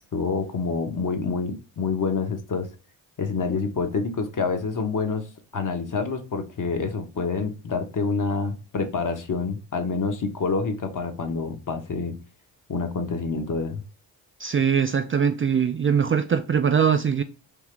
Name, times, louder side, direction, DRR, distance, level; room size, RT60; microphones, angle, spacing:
voice 1, 0.1-2.7 3.2-5.3 5.5-12.1 12.7-13.8, left 4 dB, 45° left, 1.0 m, -27 dB
voice 2, 14.4-17.2, right 7 dB, 30° right, 0.4 m, -22 dB
3.6 x 2.8 x 3.2 m
supercardioid pair, 50°, 44 cm